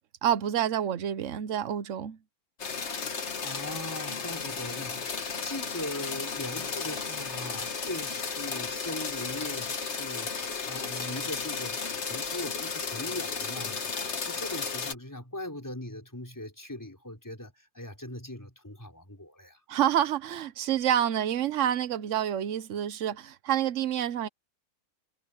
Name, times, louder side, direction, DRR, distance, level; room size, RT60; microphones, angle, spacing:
voice 1, 0.2-2.2 19.7-24.3, right 10 dB, 60° right, 1.1 m, -28 dB
sound 1, 2.6-14.9, left 5 dB, 50° left, 1.7 m, -34 dB
voice 2, 3.4-5.1 5.4-13.9 14.2-19.6, left 1 dB, 10° left, 4.7 m, -40 dB
omnidirectional pair, 1.5 m